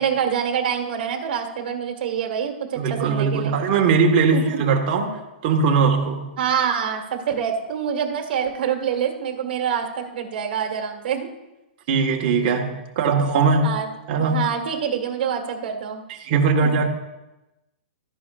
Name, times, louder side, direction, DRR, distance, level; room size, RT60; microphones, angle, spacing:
voice 1, 0.0-3.5 4.3-4.6 6.4-11.3 13.6-13.9 14.2-16.0 16.6-16.8, right 8 dB, 55° right, 3 dB, 1.7 m, -26 dB
voice 2, 2.7-6.3 11.9-13.8 14.1-14.4 16.2-16.9, right 5 dB, 40° right, 1 dB, 1.5 m, -20 dB
14.0 x 10.5 x 2.5 m, 1.0 s
hypercardioid pair, 155°, 6 cm